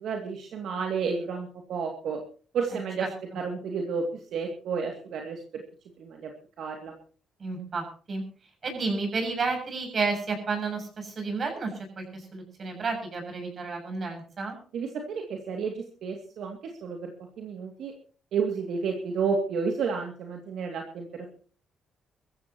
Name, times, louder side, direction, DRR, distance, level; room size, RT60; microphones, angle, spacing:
voice 1, 0.0-2.2 2.5-3.1 3.3-4.0 4.3-5.6 6.0-6.3 6.6-6.9 14.7-17.9 18.3-21.3, right 5 dB, 75° right, 2 dB, 2.5 m, -31 dB
voice 2, 7.4-8.2 8.6-14.6, right 4 dB, 45° right, 5 dB, 7.5 m, -31 dB
23.5 x 14.5 x 3.0 m, 0.41 s
cardioid pair, 90°, 0 cm